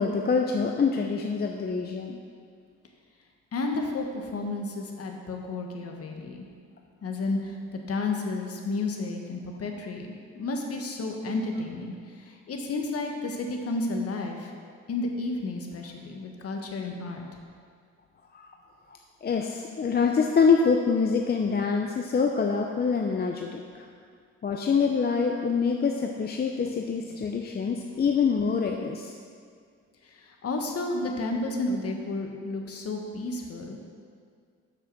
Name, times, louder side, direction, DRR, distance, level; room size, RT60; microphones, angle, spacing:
voice 1, 0.0-2.2 18.3-18.5 19.2-23.9 24.4-29.1, left 5 dB, 35° left, 2 dB, 0.6 m, -25 dB
voice 2, 3.5-6.4 7.0-14.5 14.9-17.2 30.0-33.8, left 2 dB, 50° left, 2 dB, 1.4 m, -32 dB
7.5 x 6.5 x 6.1 m, 2.1 s
cardioid pair, 90°, 30 cm